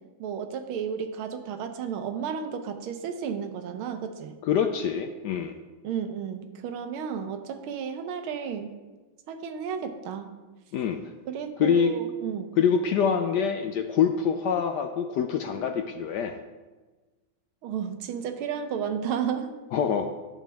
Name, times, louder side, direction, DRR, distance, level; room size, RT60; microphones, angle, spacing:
voice 1, 0.2-4.3 5.8-8.7 9.3-10.3 11.3-12.5 17.6-19.5, right 7 dB, 85° right, 8 dB, 1.7 m, -32 dB
voice 2, 4.4-5.6 10.7-11.0 11.6-11.9 12.6-16.3 19.7-20.1, left 7 dB, 75° left, 6 dB, 1.0 m, -25 dB
12.0 x 7.4 x 3.4 m, 1.3 s
omnidirectional pair, 2.2 m